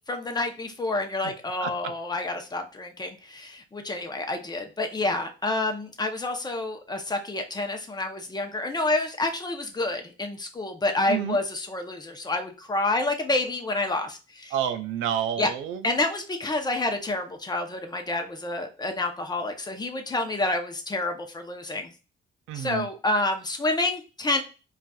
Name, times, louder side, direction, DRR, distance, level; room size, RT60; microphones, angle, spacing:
voice 1, 0.1-14.5 15.4-15.5 15.8-21.9 22.5-24.4, left 2 dB, 20° left, 5 dB, 0.6 m, -28 dB
voice 2, 14.5-15.8 22.5-22.9, right 10 dB, 85° right, 9 dB, 0.5 m, -29 dB
3.9 x 2.4 x 2.3 m, 0.32 s
cardioid pair, 90°, 20 cm